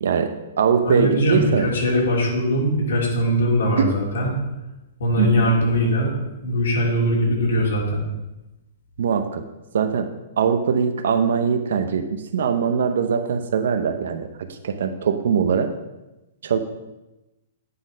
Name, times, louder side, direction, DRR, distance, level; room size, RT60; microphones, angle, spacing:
voice 1, 0.0-1.7 3.8-3.9 5.2-5.5 9.0-9.4 9.7-15.7 16.4-16.6, right 6 dB, 65° right, 9 dB, 0.7 m, -22 dB
voice 2, 0.8-4.4 5.0-8.0, equal, 80° left, -3 dB, 3.1 m, -21 dB
9.5 x 4.1 x 5.1 m, 1.0 s
hypercardioid pair, 180°, 0 cm